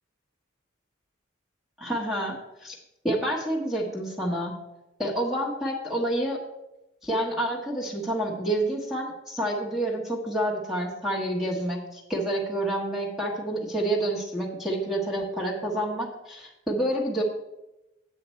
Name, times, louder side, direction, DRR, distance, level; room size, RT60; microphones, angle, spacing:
voice 1, 1.8-2.8 3.0-4.5 5.0-6.4 7.0-17.2, right 1 dB, ahead, -4 dB, 1.2 m, -28 dB
8.1 x 7.6 x 4.4 m, 0.93 s
head